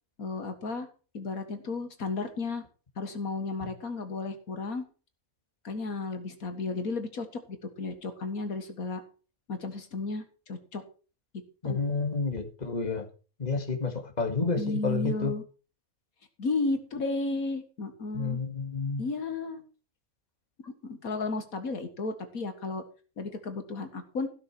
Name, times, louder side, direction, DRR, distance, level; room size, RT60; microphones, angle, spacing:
voice 1, 0.2-0.9 1.1-2.6 3.0-4.8 5.6-9.0 9.5-10.8 11.6-11.8 14.6-15.4 16.4-18.4 19.0-19.6 20.8-22.8 23.2-24.3, left 3 dB, 75° left, 8 dB, 2.1 m, -33 dB
voice 2, 11.6-13.1 13.4-15.3 18.1-19.0, left 4 dB, 30° left, 4 dB, 2.1 m, -30 dB
15.5 x 6.8 x 6.1 m, 0.37 s
omnidirectional pair, 1.5 m